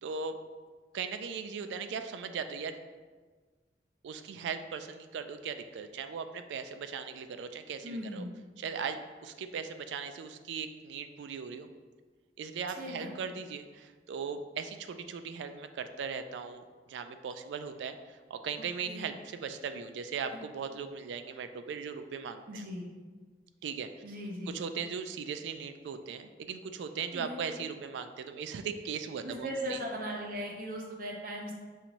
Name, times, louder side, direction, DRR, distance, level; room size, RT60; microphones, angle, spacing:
voice 1, 0.0-0.4 0.9-2.8 4.0-8.2 8.6-11.7 12.4-22.6 23.6-23.9 24.5-29.8, right 6 dB, 90° right, 9 dB, 0.3 m, -38 dB
voice 2, 7.8-8.3 12.8-13.1 18.8-19.0 22.5-22.8 24.0-24.5 27.1-27.4 29.2-31.5, equal, 50° right, -1 dB, 0.7 m, -38 dB
5.5 x 2.6 x 2.9 m, 1.4 s
head